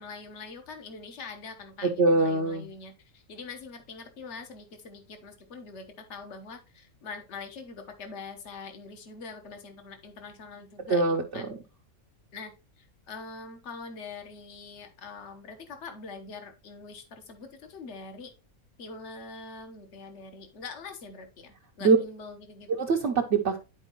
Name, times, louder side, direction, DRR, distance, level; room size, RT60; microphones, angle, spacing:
voice 1, 0.0-11.6 12.3-18.3 18.8-22.8, left 4 dB, 55° left, 6 dB, 1.4 m, -44 dB
voice 2, 2.0-2.7 10.9-11.4 21.8-22.0 22.8-23.6, right 4 dB, 60° right, 0 dB, 1.1 m, -23 dB
11.0 x 4.5 x 3.0 m, 0.30 s
omnidirectional pair, 1.5 m